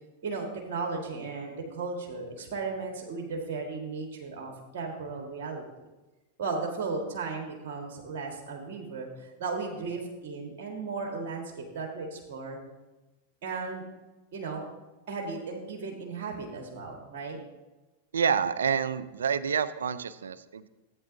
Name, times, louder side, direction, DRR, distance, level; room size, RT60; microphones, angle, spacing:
voice 1, 0.2-5.6 6.4-12.6 13.4-13.8 14.3-14.6 15.1-17.4, right 4 dB, 60° right, 1 dB, 1.6 m, -35 dB
voice 2, 18.1-20.7, right 7 dB, 80° right, 16 dB, 0.4 m, -28 dB
14.0 x 8.8 x 2.7 m, 1.1 s
hypercardioid pair, 95°, 0 cm